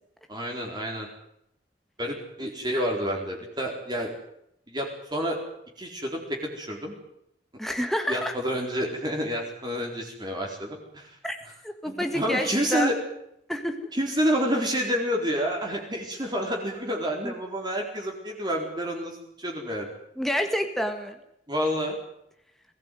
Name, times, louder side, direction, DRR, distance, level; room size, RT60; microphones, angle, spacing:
voice 1, 0.3-1.1 2.0-4.1 4.7-5.4 5.8-6.9 8.1-11.1 11.9-12.9 13.9-19.9 21.5-22.0, equal, 25° right, 0 dB, 4.2 m, -29 dB
voice 2, 7.6-8.4 11.2-11.4 11.6-12.9 13.5-13.9 17.2-17.3 20.2-21.2, equal, ahead, 5 dB, 1.7 m, -28 dB
21.5 x 16.5 x 9.3 m, 0.77 s
head